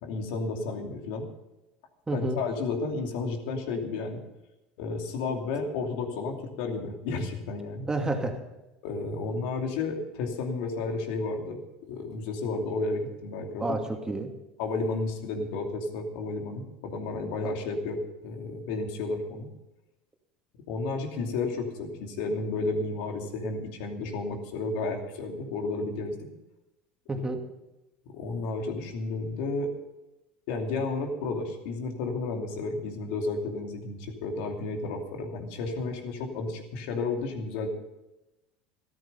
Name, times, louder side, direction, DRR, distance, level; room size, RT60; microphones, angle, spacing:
voice 1, 0.0-1.3 2.1-4.2 4.8-7.9 8.8-11.6 11.9-14.0 14.6-19.5 20.5-26.3 28.1-29.7 30.5-37.7, left 3 dB, 75° left, 3 dB, 2.7 m, -32 dB
voice 2, 2.1-2.4 7.9-8.4 13.6-14.3 27.1-27.4, right 2 dB, 15° right, 4 dB, 2.4 m, -29 dB
14.0 x 13.5 x 5.5 m, 0.99 s
supercardioid pair, 95°, 4 cm